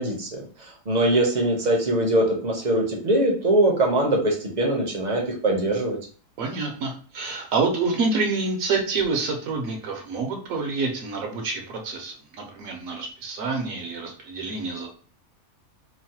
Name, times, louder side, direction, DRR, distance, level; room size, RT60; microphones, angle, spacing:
voice 1, 0.0-6.0, right 1 dB, 45° right, 1 dB, 0.6 m, -22 dB
voice 2, 6.4-14.9, right 4 dB, 80° right, 2 dB, 1.1 m, -27 dB
3.0 x 2.0 x 2.7 m, 0.42 s
omnidirectional pair, 1.4 m